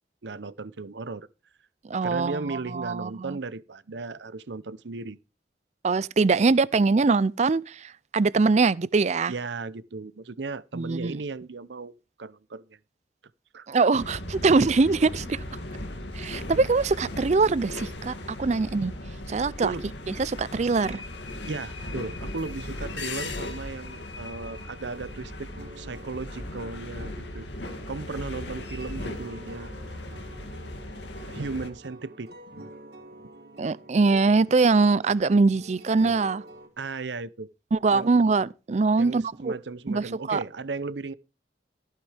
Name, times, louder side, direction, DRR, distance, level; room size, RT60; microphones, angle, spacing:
voice 1, 0.2-1.3 2.0-5.2 9.3-12.8 13.5-13.7 19.6-19.9 21.5-25.5 25.8-27.5 27.9-29.7 31.3-32.3 36.8-37.5 37.9-38.1 39.0-41.1, right 3 dB, 80° right, 0.7 m, -36 dB
voice 2, 1.9-3.4 5.8-9.3 10.7-11.2 13.7-15.4 16.1-18.9 19.3-19.7 20.2-21.0 33.6-36.4 37.7-39.6 39.9-40.4, right 4 dB, 40° right, 0.4 m, -23 dB
sound 1, 14.0-31.7, left 1 dB, 80° left, 2.3 m, -37 dB
sound 2, 24.4-36.7, right 1 dB, 60° right, 3.4 m, -48 dB
14.5 x 9.1 x 3.4 m
head